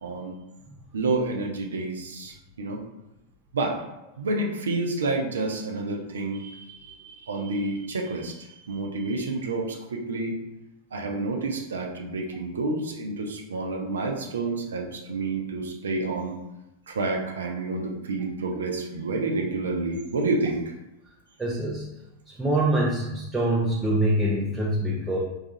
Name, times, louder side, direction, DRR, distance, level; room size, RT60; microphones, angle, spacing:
voice 1, 0.0-0.3 0.9-2.8 3.5-3.8 4.2-10.4 10.9-16.3 16.9-20.6, right 3 dB, 70° right, 2 dB, 0.5 m, -29 dB
voice 2, 21.4-21.9 22.3-25.2, right 1 dB, 10° right, -4 dB, 0.5 m, -24 dB
4.0 x 2.3 x 2.6 m, 0.93 s
figure-of-eight pair, 90°, 0 cm